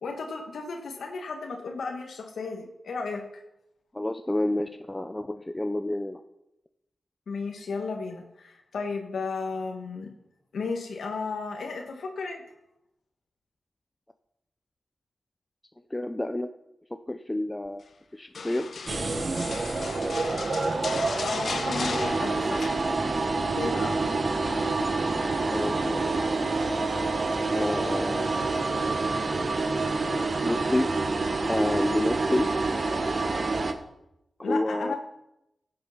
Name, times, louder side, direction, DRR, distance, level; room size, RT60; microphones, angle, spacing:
voice 1, 0.0-3.2 7.3-10.1 10.5-12.4 21.2-22.6 23.6-24.1 34.4-34.9, left 4 dB, 90° left, 2 dB, 1.5 m, -34 dB
voice 2, 3.9-6.2 15.9-16.5 17.1-17.8 18.1-18.7 25.5-26.2 27.5-28.4 30.4-30.9 31.5-32.5 34.4-34.9, left 1 dB, 15° left, 8 dB, 0.7 m, -29 dB
sound 1, 18.3-23.4 23.6-24.0 24.4-25.5 26.6-27.0 27.6-27.7, left 5 dB, 70° left, 0.8 m, -38 dB
sound 2, 18.9-33.7, right 3 dB, 50° right, 1.4 m, -27 dB
15.0 x 7.7 x 5.8 m, 0.84 s
cardioid pair, 65°, 0 cm